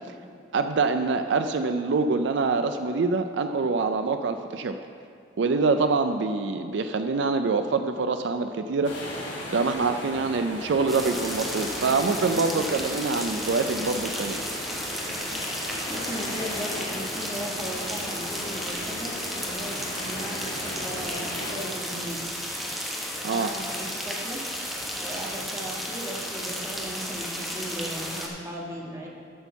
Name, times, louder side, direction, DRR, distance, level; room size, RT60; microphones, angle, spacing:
voice 1, 0.5-4.8 5.4-9.0 9.5-14.4 23.2-23.5, right 4 dB, 75° right, 8 dB, 0.4 m, -25 dB
sound 1, 8.8-21.6, left 1 dB, 80° left, 2.4 m, -37 dB
sound 2, 10.9-28.3, equal, ahead, 1.2 m, -33 dB
voice 2, 11.8-12.6 15.9-22.2 23.3-24.4 25.0-29.1, equal, 15° right, -2 dB, 1.4 m, -37 dB
12.5 x 4.4 x 6.9 m, 2.4 s
head